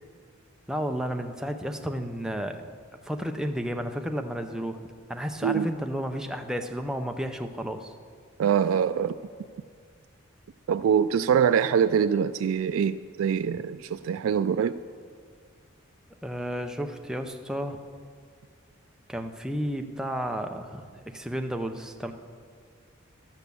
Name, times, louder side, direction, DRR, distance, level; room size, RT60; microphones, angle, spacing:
voice 1, 0.7-2.6 3.0-4.8 5.1-7.9 13.5-13.6 16.2-17.8 19.1-20.9 21.1-22.1, equal, 5° right, 4 dB, 0.6 m, -32 dB
voice 2, 8.4-9.2 10.7-14.8, right 7 dB, 80° right, 10 dB, 0.3 m, -24 dB
12.0 x 8.2 x 6.9 m, 2.1 s
head